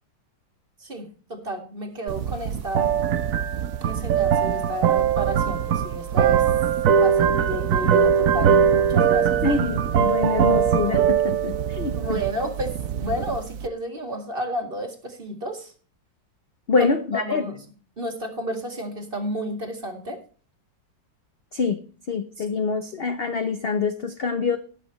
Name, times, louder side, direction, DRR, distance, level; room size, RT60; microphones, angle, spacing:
voice 1, 0.8-2.9 3.8-6.4 6.9-9.3 11.9-12.7 13.0-15.7 16.8-17.6 18.0-20.2 22.4-22.5, right 1 dB, 30° right, 5 dB, 2.1 m, -31 dB
sound 1, 2.1-13.7, right 8 dB, 65° right, 0.9 m, -21 dB
voice 2, 9.4-12.2 16.7-17.4 21.5-21.8 22.1-24.6, left 4 dB, 60° left, 9 dB, 0.6 m, -25 dB
19.0 x 6.7 x 3.1 m, 0.40 s
omnidirectional pair, 2.1 m